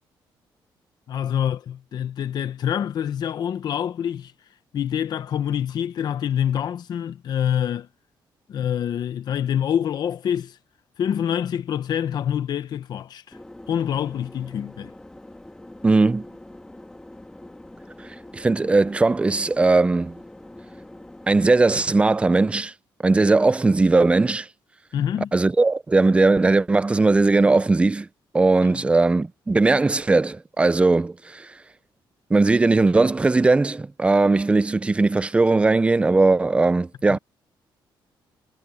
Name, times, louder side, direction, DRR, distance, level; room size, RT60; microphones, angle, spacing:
voice 1, 1.1-4.3 4.7-7.9 8.5-10.6 11.0-13.4 13.7-14.9 24.9-25.3 28.6-28.8 37.1-37.2, left 9 dB, 55° left, 0.9 m, -26 dB
sound 1, 13.3-21.7, left 1 dB, 10° left, 2.0 m, -44 dB
voice 2, 15.8-16.2 18.0-20.2 21.3-22.7 23.0-24.5 25.3-28.1 28.3-31.5 32.3-37.2, right 3 dB, 15° right, 0.5 m, -19 dB
cardioid pair, 150°, 9 cm